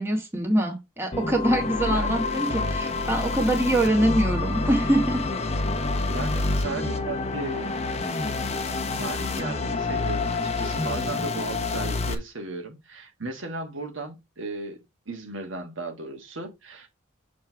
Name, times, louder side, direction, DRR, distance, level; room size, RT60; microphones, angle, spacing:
voice 1, 0.0-5.3, right 1 dB, 10° right, 1.3 m, -24 dB
sound 1, 1.1-12.1, left 3 dB, 35° left, 0.8 m, -28 dB
voice 2, 1.9-2.2 6.1-7.7 9.0-16.9, right 2 dB, 80° right, 1.4 m, -36 dB
6.4 x 3.3 x 4.4 m
head